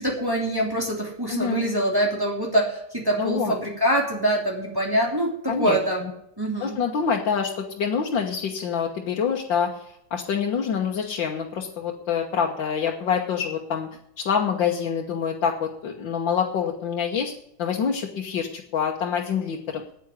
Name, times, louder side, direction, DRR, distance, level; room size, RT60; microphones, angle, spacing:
voice 1, 0.0-6.0 6.4-6.8, right 1 dB, 10° right, -2 dB, 3.3 m, -24 dB
voice 2, 1.3-1.6 3.2-3.5 5.5-6.1 6.6-13.9 14.2-17.3 17.6-19.8, left 7 dB, 80° left, -1 dB, 2.0 m, -26 dB
9.6 x 9.1 x 9.9 m, 0.77 s
omnidirectional pair, 2.0 m